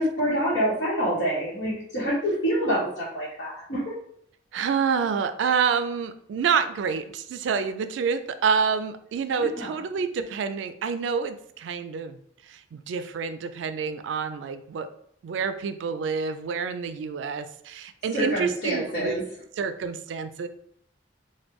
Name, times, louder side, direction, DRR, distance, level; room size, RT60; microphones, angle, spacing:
voice 1, 0.0-3.9 9.4-9.7 18.1-19.2, equal, 80° left, -9 dB, 1.0 m, -26 dB
voice 2, 4.5-12.2 12.5-14.9 15.2-19.2 19.6-20.5, right 6 dB, 80° right, 10 dB, 0.3 m, -28 dB
3.4 x 2.2 x 3.1 m, 0.68 s
head